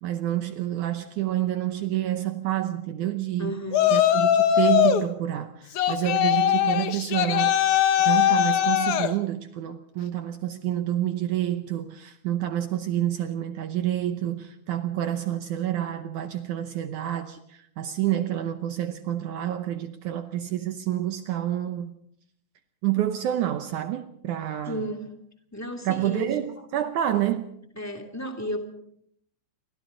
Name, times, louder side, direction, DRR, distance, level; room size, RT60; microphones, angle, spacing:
voice 1, 0.0-3.6 3.9-7.6 8.0-22.0 22.8-24.8 25.8-27.5, right 12 dB, 85° right, 1.7 m, -28 dB
voice 2, 3.4-4.0 24.6-25.0 25.5-26.3 27.8-28.6, equal, 5° left, 1.6 m, -33 dB
Yell, 3.7-5.1 5.8-9.1, left 10 dB, 65° left, 2.1 m, -21 dB
29.0 x 24.5 x 3.9 m
omnidirectional pair, 4.8 m